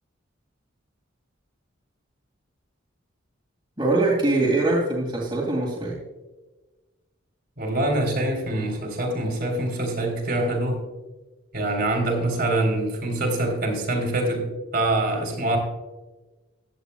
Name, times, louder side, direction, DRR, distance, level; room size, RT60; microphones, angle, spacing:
voice 1, 3.8-6.0, right 2 dB, 25° right, -4 dB, 2.3 m, -22 dB
voice 2, 7.6-10.9 11.5-15.6, right 1 dB, 50° right, 1 dB, 3.3 m, -25 dB
15.0 x 11.0 x 2.3 m, 1.2 s
head